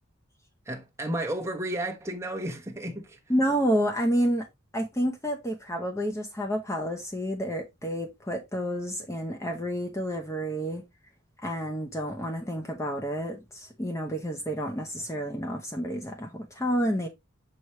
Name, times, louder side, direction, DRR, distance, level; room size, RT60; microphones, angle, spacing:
voice 1, 0.7-3.2, right 1 dB, 15° right, 1.1 m, -32 dB
voice 2, 3.3-4.5 4.7-10.8 11.4-17.1, equal, 15° left, 0.8 m, -29 dB
7.0 x 4.7 x 3.1 m
head